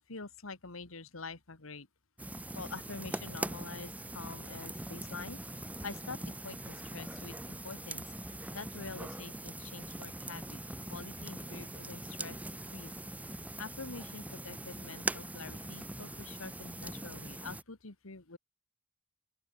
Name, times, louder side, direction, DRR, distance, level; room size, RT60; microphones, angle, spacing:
voice 1, 0.0-1.9 2.5-10.6 10.9-12.4 12.7-12.9 13.6-18.4, left 4 dB, 85° left, 2.0 m, -46 dB
sound 1, 2.2-17.6, right 1 dB, 5° right, 1.5 m, -42 dB
open air
head